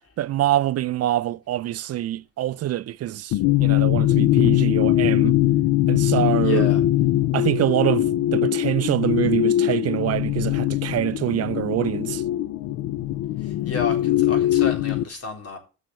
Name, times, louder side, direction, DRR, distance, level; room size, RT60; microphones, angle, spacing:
voice 1, 0.2-5.4 5.9-6.7 7.3-12.2, right 13 dB, 55° right, 0.4 m, -25 dB
sound 1, 3.3-15.0, left 14 dB, 85° left, 0.5 m, -21 dB
voice 2, 6.4-6.8 13.4-15.6, left 3 dB, 50° left, 4.0 m, -32 dB
7.3 x 6.4 x 7.7 m
cardioid pair, 90°, 30 cm